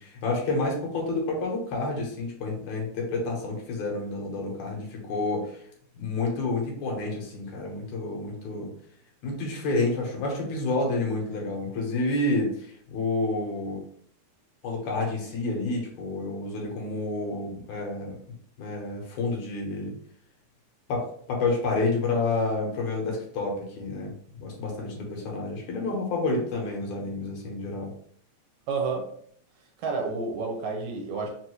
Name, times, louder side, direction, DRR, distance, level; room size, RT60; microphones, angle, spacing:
voice 1, 0.0-5.6 5.9-8.7 9.2-13.8 14.6-18.2 18.6-19.9 20.9-27.9, left 2 dB, 75° left, -1 dB, 2.4 m, -29 dB
voice 2, 28.7-29.1 29.8-31.3, right 4 dB, 75° right, 1 dB, 2.1 m, -30 dB
5.1 x 2.6 x 3.1 m, 0.62 s
omnidirectional pair, 3.4 m